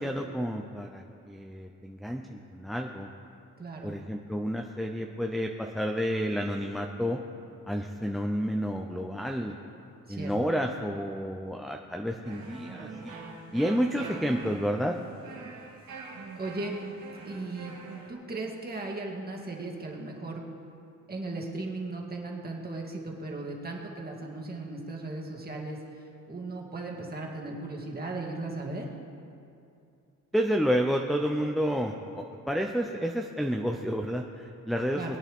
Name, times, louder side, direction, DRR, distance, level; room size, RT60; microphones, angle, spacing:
voice 1, 0.0-3.1 3.8-7.2 7.7-9.6 10.1-13.1 13.5-15.0 30.3-35.2, equal, ahead, 2 dB, 0.6 m, -30 dB
voice 2, 3.6-4.0 10.1-10.3 15.4-15.5 16.3-16.7 17.2-17.7 18.1-20.4 21.1-25.8 26.3-28.9 34.9-35.1, right 2 dB, 30° right, -1 dB, 2.2 m, -37 dB
sound 1, 12.2-18.1, right 4 dB, 85° right, 1.7 m, -43 dB
22.5 x 8.9 x 3.7 m, 2.5 s
cardioid pair, 105°, 33 cm